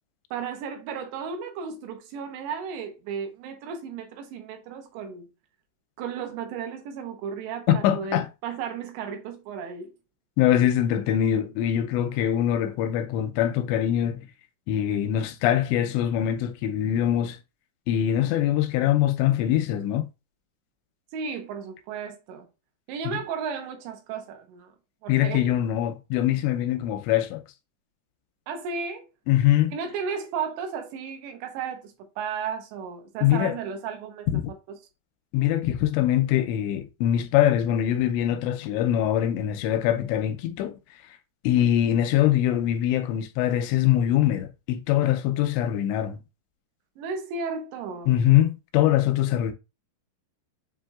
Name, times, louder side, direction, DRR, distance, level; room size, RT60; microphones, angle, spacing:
voice 1, 0.3-5.3 6.0-9.9 21.1-22.5 22.9-24.7 25.0-25.5 28.5-29.0 29.7-34.3 34.7-34.8 47.0-48.1, right 6 dB, 85° right, 3.1 m, -34 dB
voice 2, 7.7-8.3 10.4-14.3 14.7-17.4 17.9-20.0 23.1-23.2 25.1-27.4 29.3-29.7 33.2-33.6 34.3-34.4 35.3-40.8 41.4-46.2 48.1-49.5, left 11 dB, 85° left, 2.8 m, -23 dB
7.4 x 2.8 x 2.3 m
omnidirectional pair, 5.1 m